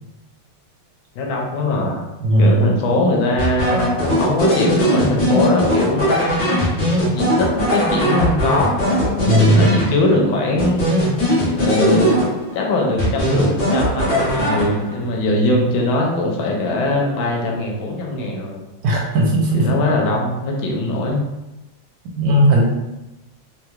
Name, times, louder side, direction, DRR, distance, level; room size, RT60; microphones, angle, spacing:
voice 1, 1.1-2.0 2.4-6.6 7.1-11.1 11.5-12.2 12.5-18.6 19.5-21.2, left 2 dB, 80° left, 0 dB, 1.3 m, -21 dB
voice 2, 2.2-2.7 9.3-9.7 15.5-15.6 18.8-19.7 22.2-22.7, right 1 dB, 75° right, -1 dB, 1.2 m, -15 dB
sound 1, 3.4-10.2 10.6-12.6 13.0-15.0, equal, 45° left, 0.9 m, -19 dB
3.2 x 2.9 x 2.3 m, 1.0 s
omnidirectional pair, 2.3 m